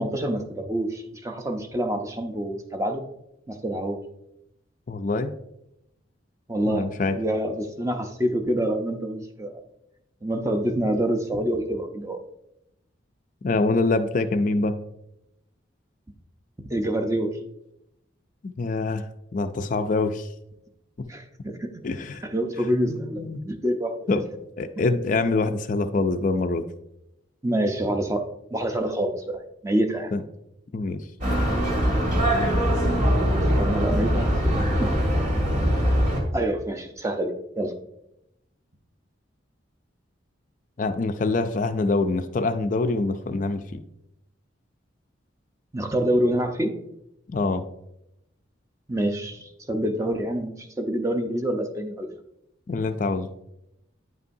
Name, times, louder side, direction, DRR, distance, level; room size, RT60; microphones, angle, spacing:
voice 1, 0.0-3.0 3.5-4.0 6.5-6.9 7.1-9.6 10.2-12.2 16.7-17.3 21.1-21.9 22.2-24.0 24.8-24.9 27.4-28.2 28.5-30.1 33.6-34.9 36.3-37.7 45.7-46.7 48.9-52.1, right 1 dB, 15° right, 5 dB, 0.6 m, -26 dB
voice 2, 4.9-5.3 6.7-7.2 13.4-14.7 18.4-19.0 19.3-20.3 21.8-22.2 22.9-23.4 24.1-24.2 24.6-26.6 30.1-30.2 30.7-31.0 40.8-43.8 47.3-47.6 52.7-53.3, left 3 dB, 40° left, 9 dB, 0.4 m, -25 dB
sound 1, 31.2-36.2, equal, 40° right, 2.0 m, -22 dB
9.4 x 5.4 x 2.7 m, 0.84 s
head